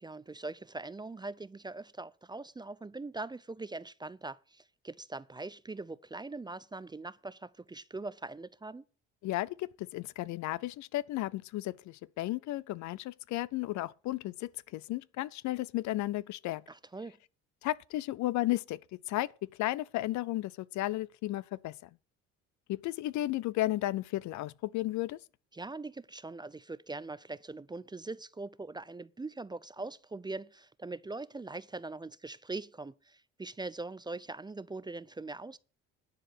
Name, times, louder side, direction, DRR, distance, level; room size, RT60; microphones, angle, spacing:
voice 1, 0.0-8.8 16.7-17.2 25.5-35.6, right 3 dB, 15° right, 0.4 m, -42 dB
voice 2, 9.2-16.6 17.6-18.8 19.1-19.3 19.6-21.9 22.7-25.2, left 16 dB, 60° left, 0.5 m, -34 dB
10.5 x 4.6 x 8.0 m
supercardioid pair, 65°, 32 cm